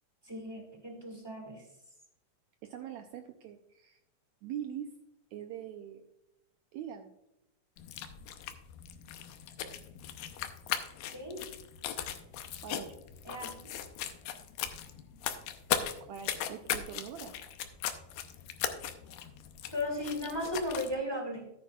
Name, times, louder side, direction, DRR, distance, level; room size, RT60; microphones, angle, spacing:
voice 1, 0.2-1.6 11.1-11.4 13.2-13.7 19.7-21.5, left 1 dB, 15° right, 0 dB, 1.0 m, -36 dB
voice 2, 2.6-4.0 4.4-4.9 5.3-6.0 6.7-7.1 12.6-13.0 16.0-17.3, right 9 dB, 90° right, 6 dB, 1.6 m, -42 dB
sound 1, 7.8-21.0, left 10 dB, 80° left, 2.5 m, -38 dB
13.5 x 9.2 x 2.3 m, 0.86 s
omnidirectional pair, 3.9 m